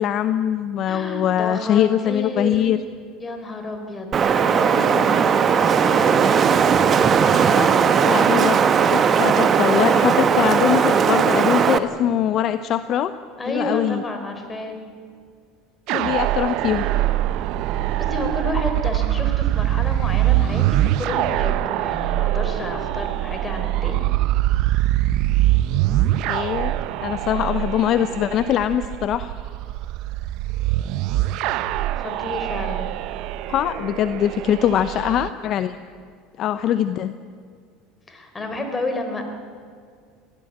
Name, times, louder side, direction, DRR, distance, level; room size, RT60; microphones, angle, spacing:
voice 1, 0.0-2.8 7.3-7.7 8.0-8.6 8.9-13.1 13.5-14.0 15.9-16.8 26.3-26.7 27.0-29.3 33.5-35.8 36.4-37.1, left 10 dB, 50° left, 12 dB, 0.7 m, -22 dB
voice 2, 0.9-2.7 3.2-6.2 7.6-7.7 13.4-14.8 18.0-24.1 32.0-32.9 38.1-39.2, left 2 dB, 20° left, 5 dB, 4.3 m, -30 dB
Wind, 4.1-11.8, right 6 dB, 40° right, 1.3 m, -17 dB
sound 1, 15.9-35.3, right 14 dB, 65° right, 0.8 m, -23 dB
22.5 x 16.0 x 8.7 m, 2.1 s
hypercardioid pair, 85°, 0 cm